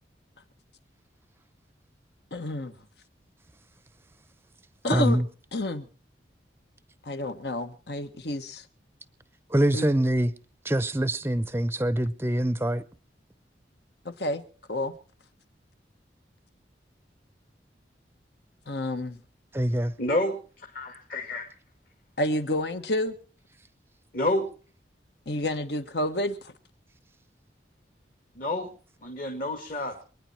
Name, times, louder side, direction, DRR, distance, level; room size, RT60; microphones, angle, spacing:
voice 1, 2.3-2.7 4.8-5.2 5.5-5.8 7.0-8.6 9.7-9.8 14.0-14.4 14.7-14.9 18.7-19.2 22.2-23.2 25.3-26.5, left 1 dB, 70° left, 1.5 m, -29 dB
voice 2, 4.9-5.3 9.5-10.3 10.6-12.8 19.5-19.9, right 1 dB, 15° right, 0.7 m, -24 dB
voice 3, 20.0-21.5 24.1-24.5 28.4-28.7 29.0-30.0, left 1 dB, 50° left, 2.2 m, -29 dB
26.5 x 9.8 x 4.5 m
head